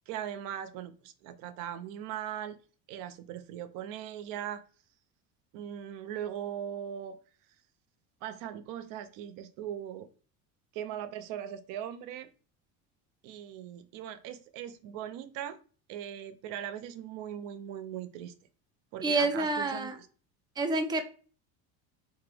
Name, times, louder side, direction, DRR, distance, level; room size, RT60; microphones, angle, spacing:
voice 1, 0.1-2.6 2.9-4.6 5.5-7.2 8.2-10.1 10.7-12.3 13.2-15.6 15.9-18.3 18.9-19.9, right 10 dB, 65° right, 0.6 m, -39 dB
voice 2, 19.0-20.0 20.6-21.0, right 3 dB, 15° right, 0.3 m, -28 dB
3.4 x 3.2 x 3.3 m
cardioid pair, 150°, 36 cm